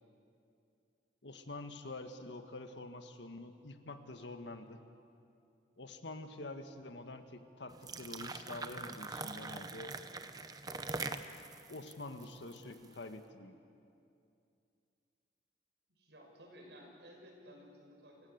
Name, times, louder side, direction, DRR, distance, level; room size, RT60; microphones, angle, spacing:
voice 1, 1.2-4.8 5.8-10.0 11.7-13.5, left 2 dB, 90° left, 7 dB, 1.6 m, -47 dB
sound 1, 7.7-13.0, right 3 dB, 20° right, 0.8 m, -43 dB
voice 2, 15.9-18.3, equal, 80° right, 0 dB, 5.8 m, -56 dB
28.5 x 16.0 x 8.1 m, 2.5 s
head